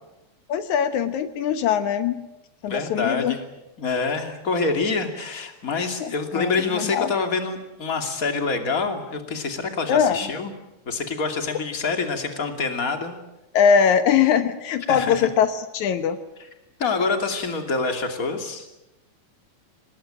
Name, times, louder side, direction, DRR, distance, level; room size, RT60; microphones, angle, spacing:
voice 1, 0.5-2.2 2.6-3.4 6.0-7.1 9.9-10.2 13.5-16.2, left 7 dB, 80° left, 10 dB, 2.5 m, -21 dB
voice 2, 2.7-3.4 3.8-10.5 10.8-13.2 14.9-15.3 16.8-18.7, left 4 dB, 30° left, 5 dB, 2.9 m, -26 dB
26.0 x 19.5 x 8.9 m, 0.97 s
omnidirectional pair, 3.4 m